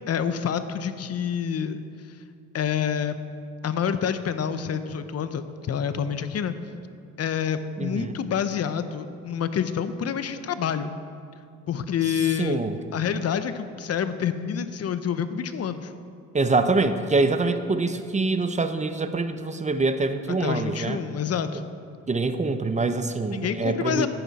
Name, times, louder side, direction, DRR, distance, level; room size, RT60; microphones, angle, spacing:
voice 1, 0.1-1.8 2.1-2.2 2.5-3.2 3.6-6.5 7.2-10.9 11.7-12.6 12.9-15.9 20.4-21.6 23.3-24.1, left 8 dB, 55° left, 11 dB, 0.8 m, -27 dB
voice 2, 7.8-8.1 12.4-12.8 16.3-21.0 22.1-24.1, right 3 dB, 25° right, 9 dB, 0.7 m, -25 dB
14.5 x 12.0 x 4.2 m, 2.4 s
cardioid pair, 90°, 30 cm